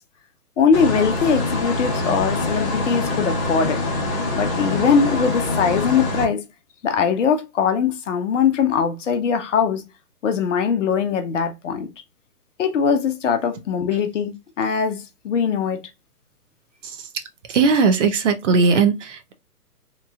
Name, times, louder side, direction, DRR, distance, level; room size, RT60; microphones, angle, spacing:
voice 1, 0.6-3.8 4.3-6.4 6.8-9.8 10.2-11.9 12.6-15.8, left 6 dB, 50° left, 0.7 m, -21 dB
sound 1, 0.7-6.3, left 2 dB, 20° left, 1.0 m, -24 dB
voice 2, 17.5-19.3, right 4 dB, 50° right, 0.6 m, -18 dB
3.0 x 2.6 x 2.3 m
hypercardioid pair, 150°, 47 cm